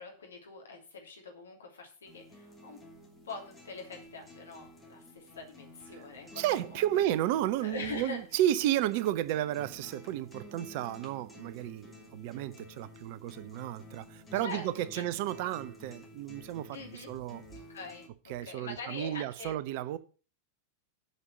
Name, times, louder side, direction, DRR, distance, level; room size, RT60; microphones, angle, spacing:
voice 1, 0.0-2.8 3.2-6.8 7.6-8.2 14.4-15.0 16.7-17.1 17.5-19.5, left 3 dB, 70° left, 2.9 m, -44 dB
sound 1, 2.1-18.1, left 1 dB, 10° left, 2.8 m, -52 dB
voice 2, 6.4-16.8 17.1-17.4 18.3-20.0, right 12 dB, 50° right, 0.7 m, -32 dB
8.2 x 5.4 x 7.8 m
figure-of-eight pair, 90°, 0 cm